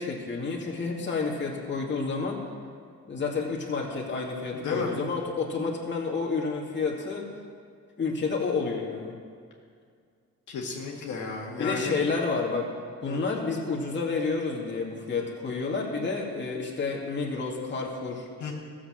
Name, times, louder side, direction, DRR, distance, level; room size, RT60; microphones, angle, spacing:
voice 1, 0.0-2.4 3.1-7.3 8.0-9.1 11.6-12.7 13.0-18.3, left 4 dB, 40° left, -2 dB, 2.5 m, -30 dB
voice 2, 4.6-4.9 10.5-12.0 13.0-13.2 18.4-18.5, left 4 dB, 70° left, -2 dB, 2.0 m, -32 dB
14.0 x 7.4 x 7.4 m, 2.2 s
cardioid pair, 90°, 30 cm